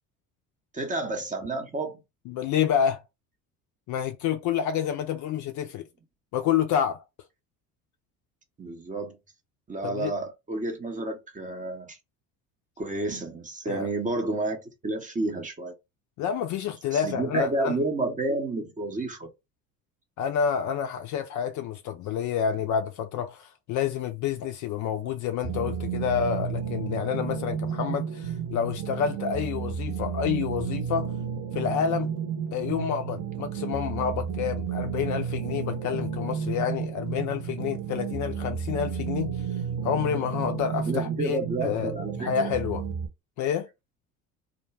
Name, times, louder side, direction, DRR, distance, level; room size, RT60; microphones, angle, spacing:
voice 1, 0.7-2.0 8.6-9.2 9.7-12.0 12.8-15.7 16.9-19.3 40.9-42.3, right 2 dB, 15° right, 0.6 m, -30 dB
voice 2, 2.3-3.0 3.9-5.9 6.3-7.0 9.8-10.1 13.7-13.9 16.2-17.7 20.2-31.1 31.5-32.1 32.5-39.4 39.8-41.9 42.2-42.9 43.4-43.7, left 8 dB, 45° left, 0.4 m, -28 dB
sound 1, 25.4-43.1, right 7 dB, 45° right, 0.9 m, -32 dB
2.4 x 2.0 x 3.2 m
hypercardioid pair, 65°, 45 cm